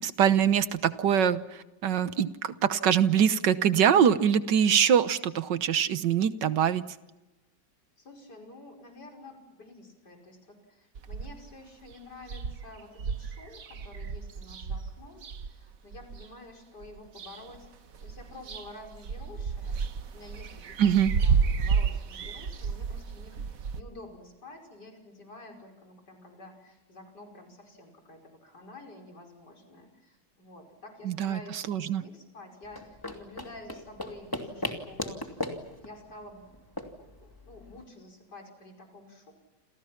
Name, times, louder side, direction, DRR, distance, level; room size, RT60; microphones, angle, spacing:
voice 1, 0.0-6.8 20.8-21.1 31.0-32.0, right 8 dB, 75° right, 13 dB, 1.7 m, -24 dB
voice 2, 8.0-17.7 18.0-19.8 20.1-20.8 21.2-35.4 35.8-36.4 37.0-39.3, left 2 dB, 65° left, 2 dB, 6.1 m, -49 dB
sound 1, 11.0-11.6 11.9-12.0 12.2-16.3 16.8-17.7 17.9-23.8, right 5 dB, 55° right, 1.5 m, -31 dB
sound 2, 32.6-37.8, left 1 dB, 10° left, 2.7 m, -38 dB
29.0 x 28.5 x 5.9 m, 1.0 s
omnidirectional pair, 1.9 m